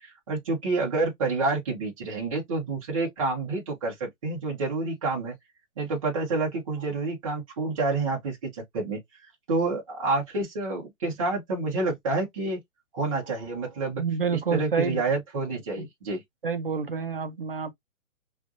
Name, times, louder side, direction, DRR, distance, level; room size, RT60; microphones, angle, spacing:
voice 1, 0.0-5.3 5.8-9.0 9.5-12.6 12.9-14.0 14.5-16.2, right 3 dB, 25° right, 1.2 m, -28 dB
voice 2, 14.0-15.0 15.8-15.9 16.4-17.7, right 5 dB, 40° right, 0.5 m, -28 dB
3.3 x 2.6 x 2.5 m
hypercardioid pair, 175°, 43 cm